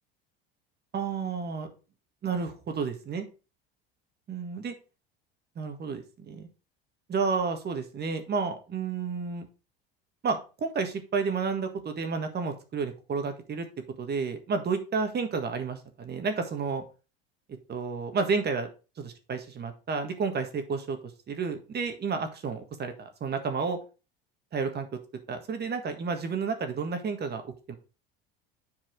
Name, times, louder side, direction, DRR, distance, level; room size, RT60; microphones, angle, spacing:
voice 1, 0.9-1.7 2.2-3.3 4.3-4.7 5.6-6.5 7.1-9.5 10.2-13.7 14.0-16.8 17.7-18.7 19.0-21.0 21.3-23.8 24.5-24.9 25.3-27.8, right 5 dB, 35° right, 7 dB, 1.6 m, -31 dB
7.8 x 4.6 x 4.6 m, 0.33 s
supercardioid pair, 105°, 29 cm